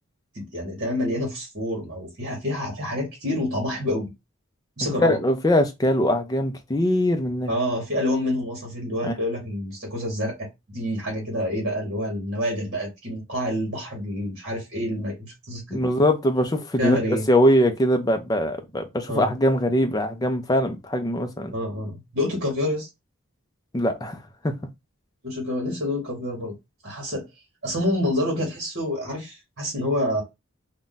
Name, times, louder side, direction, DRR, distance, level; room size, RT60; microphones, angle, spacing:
voice 1, 0.3-4.1 4.8-5.2 7.5-15.8 16.8-17.2 19.1-19.3 21.5-22.9 25.2-26.6 26.8-27.3 27.6-30.2, left 1 dB, 50° right, 1.2 m, -27 dB
voice 2, 5.0-7.5 9.0-9.1 15.7-21.5 23.7-24.2 24.4-24.5, left 1 dB, 20° left, 0.4 m, -22 dB
2.6 x 2.2 x 3.7 m
head